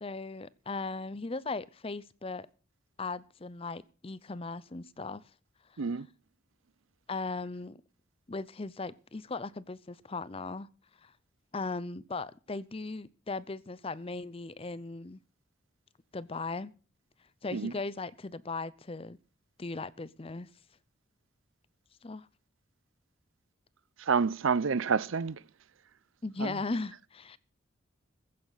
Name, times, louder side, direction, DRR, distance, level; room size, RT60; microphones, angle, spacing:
voice 1, 0.0-2.5 3.0-5.2 5.7-5.8 7.1-7.8 8.3-10.7 11.0-11.1 11.5-15.2 16.1-16.7 17.4-19.2 19.6-20.5 22.0-22.3 26.2-27.4, left 3 dB, 25° left, 0.6 m, -38 dB
voice 2, 24.0-25.4 26.4-26.5, right 5 dB, 75° right, 0.6 m, -28 dB
15.5 x 14.5 x 4.0 m
head